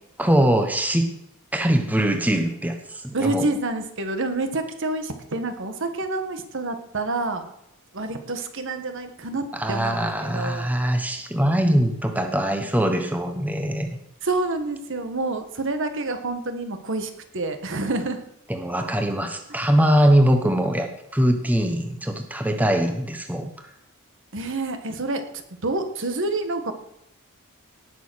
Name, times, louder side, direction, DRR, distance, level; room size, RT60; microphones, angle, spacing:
voice 1, 0.2-1.1 1.5-3.5 9.5-14.0 18.5-23.5, right 1 dB, 10° right, 6 dB, 1.1 m, -22 dB
voice 2, 3.1-7.5 7.9-10.7 14.2-18.2 24.3-25.2 25.6-26.7, right 2 dB, 60° right, 7 dB, 1.6 m, -28 dB
18.5 x 6.8 x 6.3 m, 0.80 s
head